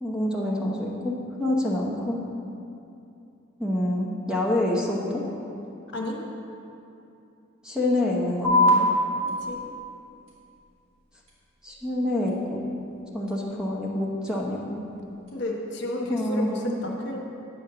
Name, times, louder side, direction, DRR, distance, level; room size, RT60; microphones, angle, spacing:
voice 1, 0.0-2.2 3.6-5.2 7.6-8.9 11.6-12.6 13.1-14.8 16.1-16.8, left 1 dB, 5° right, -3 dB, 0.8 m, -27 dB
sound 1, 8.4-15.4, left 1 dB, 85° right, 2.0 m, -29 dB
voice 2, 15.3-17.2, left 1 dB, 55° left, 0 dB, 1.1 m, -31 dB
8.4 x 5.3 x 6.7 m, 2.7 s
head